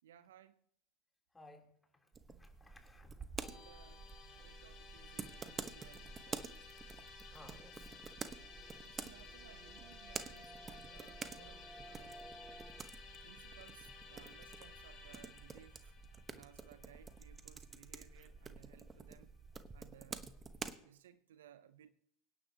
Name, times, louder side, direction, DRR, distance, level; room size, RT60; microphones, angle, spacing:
voice 1, 0.0-0.7 3.5-4.1 4.3-6.6 8.8-12.3 13.2-15.9 16.3-19.3 19.7-20.4 20.8-21.9, right 10 dB, 75° right, 0.6 m, -61 dB
voice 2, 1.3-2.1 2.4-3.3 7.0-8.1, left 1 dB, 15° left, 3.4 m, -60 dB
sound 1, 2.1-20.8, right 5 dB, 25° right, 1.1 m, -49 dB
Musical instrument, 3.4-18.6, left 5 dB, 55° left, 2.7 m, -56 dB
sound 2, 7.6-12.9, right 1 dB, 10° right, 1.3 m, -58 dB
24.5 x 10.0 x 2.9 m
hypercardioid pair, 80°, 0 cm